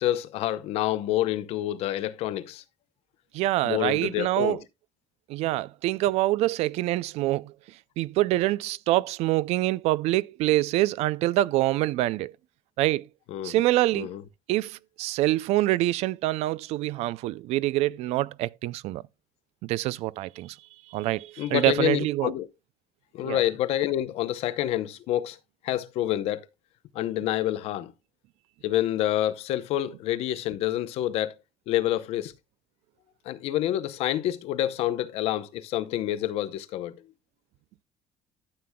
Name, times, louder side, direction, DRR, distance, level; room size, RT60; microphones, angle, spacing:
voice 1, 0.0-2.6 3.6-4.6 13.3-13.6 13.9-14.2 21.4-22.5 23.1-25.4 25.6-26.5 26.9-27.9 28.6-31.3 31.7-32.3 33.3-37.0, left 13 dB, 65° left, 0.7 m, -28 dB
voice 2, 3.3-4.6 5.3-7.5 8.0-12.3 12.8-13.1 13.4-14.1 14.5-19.0 19.6-20.6 20.9-22.3 23.2-23.4, right 16 dB, 70° right, 0.4 m, -25 dB
13.0 x 7.7 x 2.2 m
cardioid pair, 175°, 11 cm